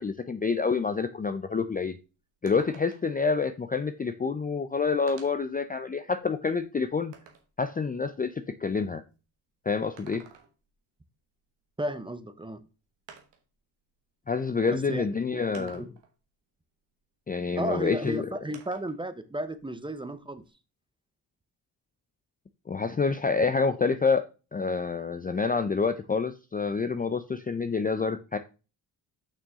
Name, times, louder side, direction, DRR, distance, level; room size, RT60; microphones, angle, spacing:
voice 1, 0.0-2.0 2.4-7.1 7.6-8.3 8.6-9.0 9.7-10.2 14.3-15.9 17.3-18.3 22.7-24.2 24.5-28.4, left 5 dB, 20° left, 0.5 m, -27 dB
sound 1, 1.5-1.6 1.9-2.0 2.5-3.2 4.3-4.4 5.1-5.5 6.1-7.5 9.8-10.7 12.2-12.3 13.1-13.5 14.5-14.6 15.5-16.2 18.5-19.0 19.4-20.5, right 7 dB, 90° right, 1.5 m, -52 dB
voice 2, 11.8-12.6 14.7-15.9 17.5-20.4, right 1 dB, 10° right, 0.8 m, -34 dB
6.8 x 6.0 x 3.6 m
cardioid pair, 85°, 42 cm